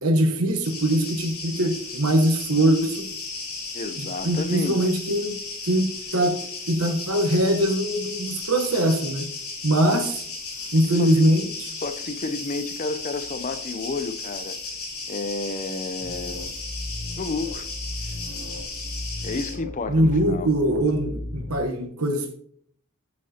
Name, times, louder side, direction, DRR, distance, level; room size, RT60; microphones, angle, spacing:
voice 1, 0.0-3.1 4.0-5.4 5.6-6.4 6.7-9.3 9.6-10.2 10.7-11.5 19.9-22.4, right 1 dB, 75° right, 1.1 m, -22 dB
sound 1, 0.6-19.5, left 3 dB, 80° left, 3.2 m, -35 dB
voice 2, 3.7-4.9 10.9-11.2 11.8-14.6 15.1-16.5 17.2-17.7 19.2-20.5, left 3 dB, 35° left, 0.5 m, -31 dB
sound 2, 16.0-21.6, left 1 dB, ahead, 3.8 m, -36 dB
14.0 x 6.4 x 2.8 m
head